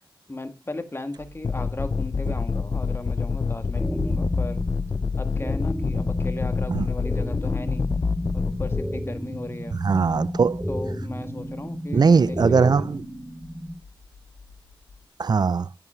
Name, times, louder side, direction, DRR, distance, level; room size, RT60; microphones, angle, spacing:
voice 1, 0.3-4.6 5.2-7.9 8.3-9.8 10.7-13.0, left 2 dB, 25° left, 1.7 m, -37 dB
sound 1, 1.1-15.1, left 4 dB, 80° left, 1.9 m, -52 dB
sound 2, 1.4-8.8, left 5 dB, 45° left, 0.4 m, -27 dB
sound 3, 3.8-13.8, equal, ahead, 2.1 m, -32 dB
voice 2, 9.8-10.6 11.9-13.0 15.2-15.7, right 5 dB, 50° right, 0.4 m, -20 dB
9.4 x 5.5 x 6.3 m
cardioid pair, 50°, 9 cm